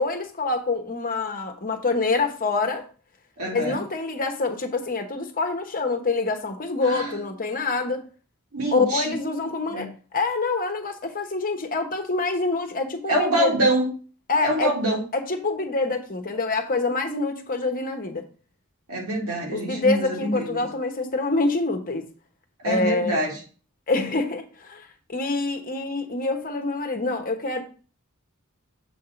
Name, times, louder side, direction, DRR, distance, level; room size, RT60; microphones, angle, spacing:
voice 1, 0.0-2.8 3.5-8.0 8.7-9.9 10.1-13.5 14.3-14.7 15.1-18.2 19.5-22.1 22.6-23.2 23.9-27.6, left 3 dB, 40° left, 1.1 m, -26 dB
voice 2, 3.4-3.8 6.8-7.2 8.5-9.1 9.7-9.9 13.1-13.9 14.4-15.0 18.9-20.7 22.6-23.4 23.9-24.1, right 1 dB, 90° right, 2.2 m, -25 dB
7.2 x 3.6 x 5.7 m
head